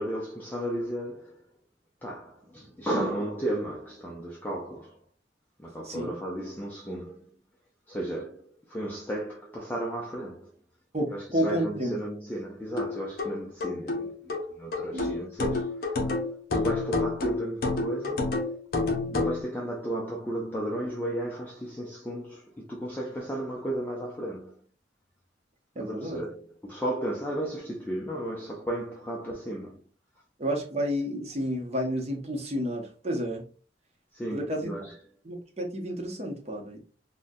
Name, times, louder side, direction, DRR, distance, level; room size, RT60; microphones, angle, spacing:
voice 1, 0.0-1.5 2.0-5.0 5.6-7.3 7.9-10.5 11.1-16.2 16.5-18.4 19.0-24.6 25.8-29.8 34.1-35.0, right 1 dB, 10° left, 0.4 m, -34 dB
voice 2, 10.9-12.0 14.9-15.0 25.8-26.2 30.4-33.5 34.3-34.7 35.3-36.8, equal, 35° right, 0.7 m, -30 dB
sound 1, 12.8-19.4, left 3 dB, 55° left, 0.7 m, -29 dB
3.7 x 2.1 x 2.6 m
head